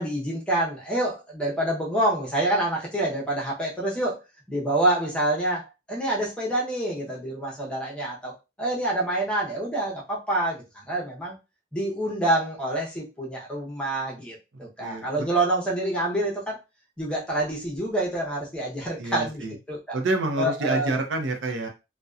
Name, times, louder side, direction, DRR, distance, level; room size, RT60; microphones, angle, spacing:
voice 1, 0.0-4.2 4.5-8.3 8.6-11.4 11.7-16.6 17.0-20.0 20.4-20.9, right 1 dB, 5° left, -3 dB, 0.7 m, -27 dB
voice 2, 14.8-15.3 19.0-19.5 19.9-21.7, right 2 dB, 90° right, 4 dB, 0.5 m, -28 dB
2.6 x 2.1 x 2.3 m, 0.26 s
head